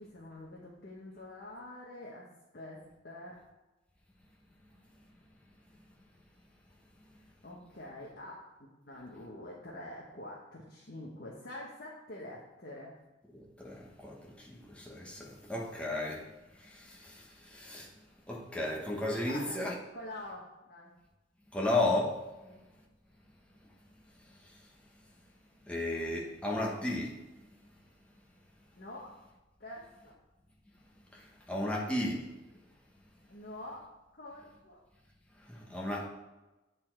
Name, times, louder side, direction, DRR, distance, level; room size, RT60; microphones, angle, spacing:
voice 1, 0.0-2.3 2.5-3.4 7.1-12.9 19.3-19.6 19.9-20.9 22.4-22.6 28.8-29.1 29.6-30.1 33.3-33.8 34.1-34.8, left 1 dB, 50° left, 1.1 m, -46 dB
voice 2, 13.3-16.3 16.6-17.9 18.3-19.7 21.5-22.2 25.7-27.2 31.1-32.3 35.5-36.1, left 1 dB, 5° left, 1.0 m, -34 dB
8.6 x 4.1 x 4.5 m
head